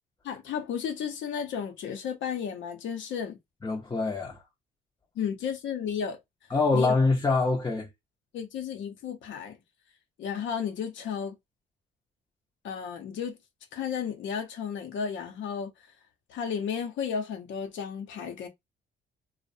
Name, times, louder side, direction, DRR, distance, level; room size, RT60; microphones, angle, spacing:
voice 1, 0.2-3.4 5.2-6.2 6.7-6.9 8.3-9.6 10.2-11.3 12.6-13.4 13.7-15.7 16.3-18.5, left 7 dB, 75° left, 0.7 m, -33 dB
voice 2, 3.6-4.4 6.5-7.9, left 3 dB, 20° left, 0.6 m, -25 dB
2.5 x 2.0 x 2.6 m
cardioid pair, 90°, 20 cm